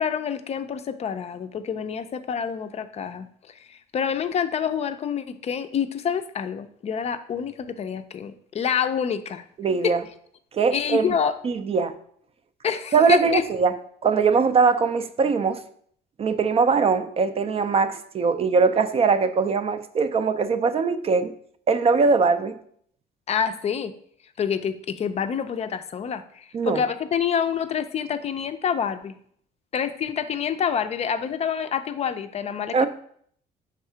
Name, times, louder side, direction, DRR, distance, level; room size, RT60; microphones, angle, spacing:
voice 1, 0.0-9.5 9.8-10.0 10.7-11.3 12.6-13.4 23.3-23.9 24.4-29.1 29.7-32.9, left 7 dB, 40° left, 0.4 m, -27 dB
voice 2, 9.6-10.0 10.5-11.1 11.4-12.0 12.9-13.7 14.0-15.6 16.2-21.3 21.7-22.6 26.5-26.8 32.7-32.9, right 5 dB, 35° right, 0.4 m, -21 dB
4.7 x 3.6 x 5.5 m
cardioid pair, 110°, 17 cm